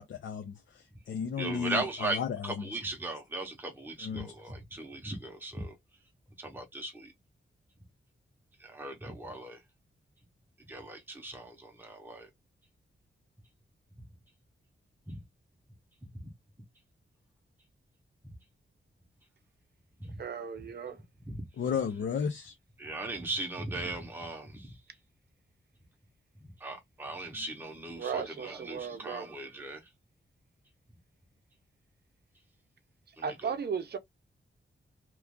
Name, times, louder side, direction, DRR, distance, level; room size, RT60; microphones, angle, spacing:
voice 1, 0.0-2.7 4.0-4.3 21.6-22.5, left 7 dB, 65° left, 0.6 m, -34 dB
voice 2, 1.4-5.8 6.4-7.1 8.6-9.6 10.7-12.3 15.1-15.2 16.2-16.3 20.0-20.2 21.3-21.5 22.8-24.8 26.6-29.9 33.2-33.5, right 2 dB, 10° right, 0.7 m, -38 dB
voice 3, 20.2-21.0 27.3-27.5 28.0-29.3 33.2-34.0, right 6 dB, 55° right, 0.6 m, -36 dB
3.0 x 2.3 x 3.6 m
wide cardioid pair, 180°, 20 cm